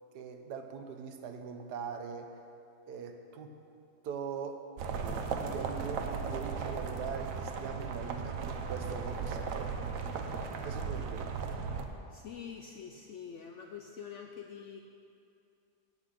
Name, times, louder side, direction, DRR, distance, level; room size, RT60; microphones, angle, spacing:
voice 1, 0.1-2.4 2.9-3.6 4.0-4.6 5.0-10.1 10.6-11.6, right 6 dB, 85° right, 5 dB, 1.4 m, -42 dB
sound 1, 4.8-11.9, right 5 dB, 65° right, 1.0 m, -36 dB
voice 2, 12.1-14.8, left 7 dB, 70° left, 3 dB, 0.7 m, -45 dB
8.9 x 8.1 x 6.4 m, 2.6 s
omnidirectional pair, 1.7 m